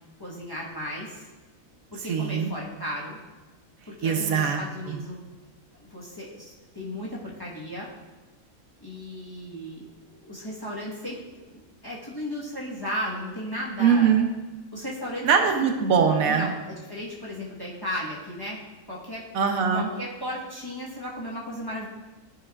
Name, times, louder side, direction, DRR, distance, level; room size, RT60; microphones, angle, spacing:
voice 1, 0.2-1.3 1.9-3.2 3.9-5.2 5.7-7.9 8.8-14.2 14.7-15.3 16.2-18.6 18.9-19.2 19.7-21.9, equal, 15° left, -6 dB, 1.2 m, -35 dB
voice 2, 2.1-2.5 4.0-4.6 4.9-5.0 13.8-14.3 15.2-16.5 19.3-19.9, right 6 dB, 75° right, 5 dB, 1.1 m, -22 dB
12.0 x 5.3 x 2.4 m, 1.1 s
omnidirectional pair, 1.5 m